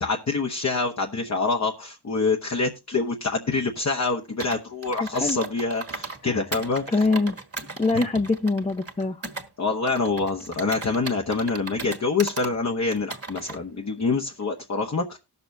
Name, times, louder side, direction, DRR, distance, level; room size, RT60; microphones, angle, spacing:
voice 1, 0.0-6.8 7.9-8.0 9.6-15.2, left 4 dB, 45° left, 2 dB, 1.0 m, -26 dB
Computer keyboard, 4.4-6.2 6.5-9.5 9.9-12.5 12.9-13.6, right 3 dB, 35° right, 1.5 m, -37 dB
voice 2, 5.0-5.4 6.2-6.4 6.9-7.4 7.8-9.3, left 3 dB, 15° left, 7 dB, 0.6 m, -24 dB
19.0 x 6.8 x 2.6 m, 0.25 s
wide cardioid pair, 100°, 39 cm